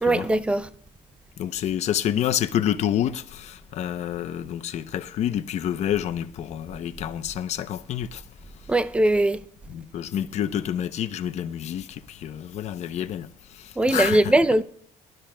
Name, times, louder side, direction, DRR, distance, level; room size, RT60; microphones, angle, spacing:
voice 1, 0.0-0.7 8.7-9.5 13.8-14.6, right 1 dB, 10° right, 0.4 m, -20 dB
voice 2, 1.4-8.2 9.7-14.3, left 10 dB, 50° left, 0.7 m, -28 dB
23.5 x 12.0 x 2.2 m
cardioid pair, 140°, 14 cm